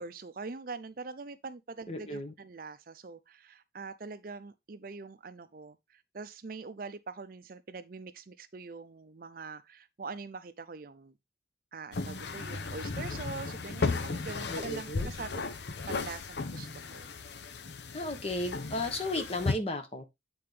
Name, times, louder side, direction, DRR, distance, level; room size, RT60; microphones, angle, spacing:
voice 1, 0.0-11.2 11.7-15.3 15.9-17.1, right 4 dB, 50° right, 0.5 m, -43 dB
voice 2, 1.9-2.3 14.5-15.1 17.9-20.1, left 1 dB, 35° left, 1.1 m, -34 dB
sound 1, 11.9-19.5, left 3 dB, 70° left, 0.7 m, -35 dB
8.6 x 4.3 x 3.3 m
head